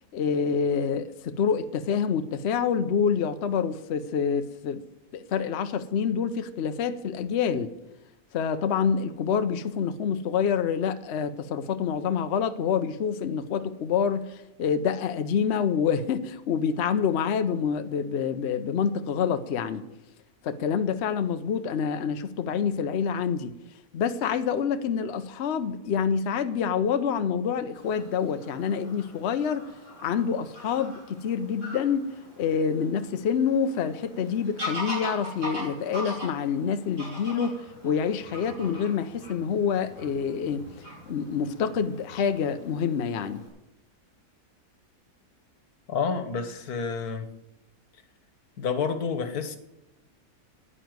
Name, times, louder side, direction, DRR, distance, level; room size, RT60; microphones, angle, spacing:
voice 1, 0.1-4.8 5.1-7.7 8.3-19.9 20.4-23.6 23.9-29.7 30.0-32.1 32.4-40.7 41.1-43.4, left 7 dB, 55° left, 0.9 m, -27 dB
Fowl / Bird vocalization bird call bird song, 27.7-43.5, left 1 dB, 55° right, 6.4 m, -41 dB
voice 2, 45.9-47.3 48.6-49.6, left 5 dB, 90° left, 1.6 m, -29 dB
10.0 x 9.6 x 9.3 m
omnidirectional pair, 1.6 m